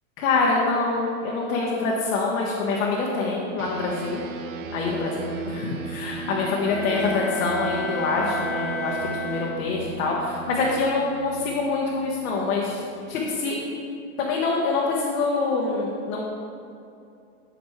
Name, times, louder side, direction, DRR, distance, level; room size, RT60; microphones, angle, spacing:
voice 1, 0.2-4.2 4.7-12.8 13.1-13.6 14.2-16.2, left 3 dB, 65° left, -4 dB, 1.5 m, -25 dB
sound 1, 3.6-13.3, right 3 dB, 60° right, 0.9 m, -37 dB
Bowed string instrument, 6.5-10.0, equal, ahead, 1.0 m, -32 dB
13.5 x 5.1 x 3.3 m, 2.6 s
supercardioid pair, 155°, 44 cm